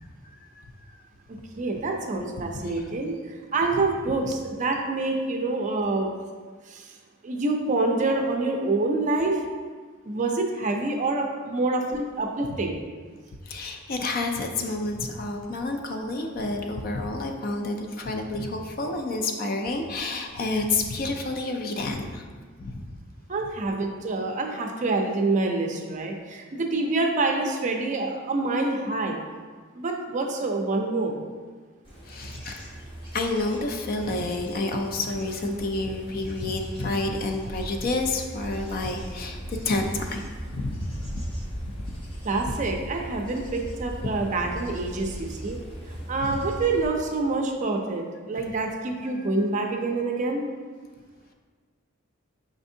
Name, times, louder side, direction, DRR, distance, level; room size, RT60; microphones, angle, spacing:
voice 1, 1.6-3.1 3.5-6.1 6.7-6.9 7.2-9.4 10.1-12.8 23.3-29.2 29.7-31.2 42.2-45.6 46.1-48.0 48.3-50.4, right 3 dB, 40° right, 2 dB, 0.4 m, -26 dB
voice 2, 13.5-22.2 22.6-22.8 32.1-32.7 33.1-41.2 44.0-44.1 46.2-46.4 49.1-49.3, left 2 dB, 45° left, 4 dB, 0.4 m, -29 dB
Bird / Insect / Wind, 31.8-46.9, equal, 25° left, 1.0 m, -38 dB
5.1 x 3.4 x 2.7 m, 1.5 s
head